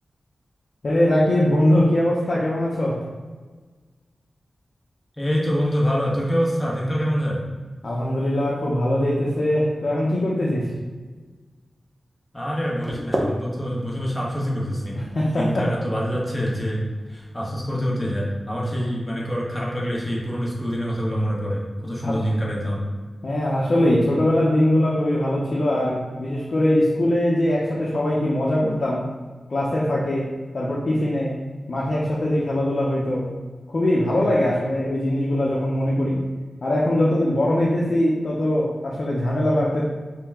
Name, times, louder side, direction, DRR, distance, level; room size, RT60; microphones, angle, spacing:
voice 1, 0.8-3.0 7.8-10.7 15.0-15.7 22.0-22.2 23.2-29.1 29.5-31.4 31.7-33.3 33.7-36.3 36.6-39.8, left 1 dB, 60° left, -5 dB, 0.6 m, -21 dB
voice 2, 5.2-7.4 12.3-15.0 15.3-22.9, equal, 15° left, -4 dB, 1.0 m, -25 dB
sound 1, 12.5-18.4, equal, 15° right, 0.7 m, -35 dB
3.2 x 2.8 x 3.5 m, 1.4 s
wide cardioid pair, 75°, 0 cm